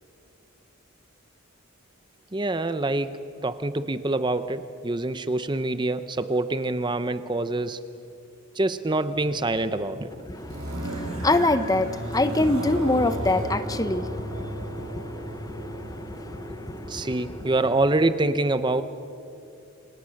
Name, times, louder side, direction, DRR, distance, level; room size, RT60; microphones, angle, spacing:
voice 1, 2.3-7.8 8.5-10.1 16.9-18.8, right 2 dB, 20° right, 0.6 m, -25 dB
sound 1, 9.1-17.7, right 1 dB, 80° right, 7.3 m, -34 dB
voice 2, 10.3-17.2, left 2 dB, 15° left, 0.8 m, -26 dB
29.0 x 26.5 x 6.5 m
head